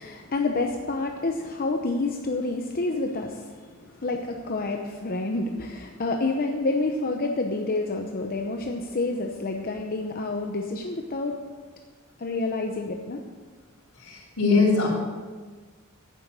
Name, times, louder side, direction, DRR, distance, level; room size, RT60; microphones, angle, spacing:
voice 1, 0.0-11.3 12.2-13.2, left 2 dB, 45° left, 2 dB, 0.8 m, -28 dB
voice 2, 14.1-14.9, left 4 dB, 80° left, -10 dB, 3.8 m, -21 dB
11.5 x 8.9 x 6.9 m, 1.4 s
head